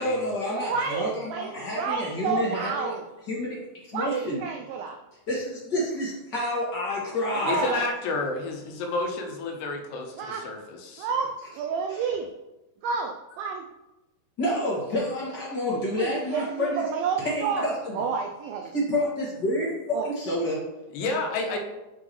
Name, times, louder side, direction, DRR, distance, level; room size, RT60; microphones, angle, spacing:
voice 1, 0.0-3.0 3.3-4.4 5.3-7.6 11.9-12.0 14.4-16.8 17.2-17.9 18.7-20.6, left 1 dB, 35° left, -5 dB, 1.9 m, -29 dB
voice 2, 0.5-3.0 3.9-5.0 7.3-7.9 10.2-10.5 11.0-12.3 12.8-13.6 15.7-17.7 18.0-18.7 19.9-20.1, right 6 dB, 85° right, 3 dB, 2.0 m, -30 dB
voice 3, 7.4-11.1 20.9-21.6, left 3 dB, 90° left, 2 dB, 3.1 m, -30 dB
8.4 x 6.2 x 3.1 m, 1.0 s
omnidirectional pair, 4.7 m